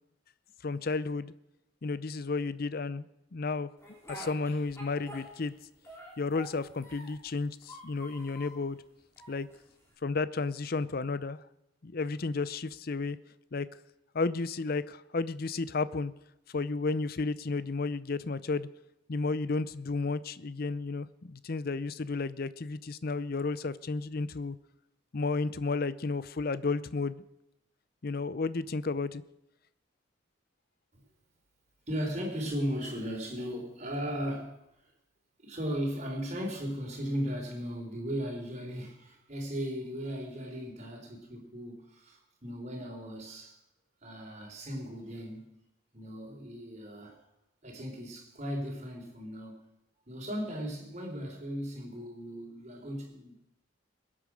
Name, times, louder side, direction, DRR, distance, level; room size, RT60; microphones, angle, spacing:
voice 1, 0.6-1.3 1.8-3.1 3.3-3.7 4.1-5.5 6.2-8.8 9.3-9.5 10.0-11.4 11.8-13.2 13.5-13.7 14.1-16.1 16.5-18.7 19.1-24.6 25.1-27.2 28.0-29.2, left 3 dB, 50° left, 16 dB, 0.6 m, -32 dB
Speech, 3.8-5.6 5.8-7.3 7.6-8.6 9.2-9.9, right 1 dB, 15° left, 4.1 m, -47 dB
voice 2, 31.9-34.9 35.4-43.6 44.0-45.6 45.9-47.2 47.6-49.6 50.1-53.4, equal, 35° right, 1 dB, 4.1 m, -37 dB
22.0 x 8.7 x 6.3 m, 0.88 s
head